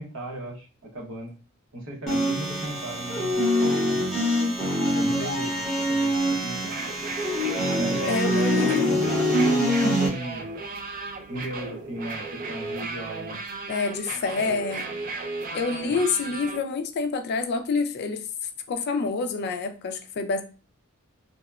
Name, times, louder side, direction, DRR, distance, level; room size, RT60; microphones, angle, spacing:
voice 1, 0.0-1.3 1.7-4.0 4.9-6.8 7.7-10.5 11.3-13.4 15.8-16.0, right 1 dB, 70° right, -2 dB, 0.9 m, -36 dB
sound 1, 2.1-10.1, equal, 5° left, 0.8 m, -24 dB
sound 2, 6.6-16.6, right 3 dB, 40° right, 0.3 m, -35 dB
voice 2, 8.1-9.1 13.7-14.9 15.5-18.2 18.7-20.4, left 4 dB, 50° left, 7 dB, 0.3 m, -27 dB
2.8 x 2.1 x 2.2 m, 0.35 s
head